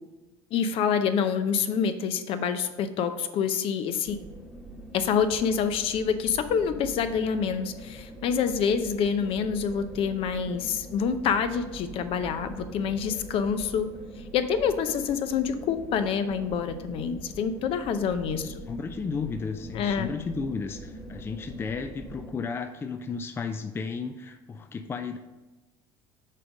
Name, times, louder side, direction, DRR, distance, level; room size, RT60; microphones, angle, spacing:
voice 1, 0.5-4.2 4.9-13.9 14.3-18.5 19.7-20.1, left 7 dB, 55° left, 9 dB, 0.7 m, -27 dB
sound 1, 4.1-22.3, right 1 dB, ahead, 1.2 m, -43 dB
voice 2, 18.3-25.2, left 5 dB, 20° left, 8 dB, 0.4 m, -34 dB
6.7 x 3.7 x 6.1 m, 1.1 s
supercardioid pair, 110°, 11 cm